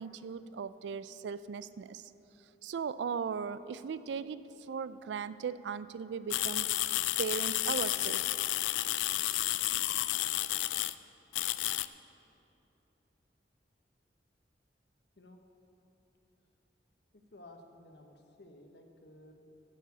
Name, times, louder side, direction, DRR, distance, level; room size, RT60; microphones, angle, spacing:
voice 1, 0.0-2.1 2.6-6.7 7.2-8.3, right 6 dB, 70° right, 15 dB, 0.3 m, -38 dB
sound 1, 6.3-10.9 11.3-11.9, left 15 dB, 90° left, 0.3 m, -31 dB
voice 2, 17.1-19.3, left 1 dB, 65° left, 4 dB, 1.0 m, -55 dB
13.0 x 4.9 x 8.0 m, 2.9 s
head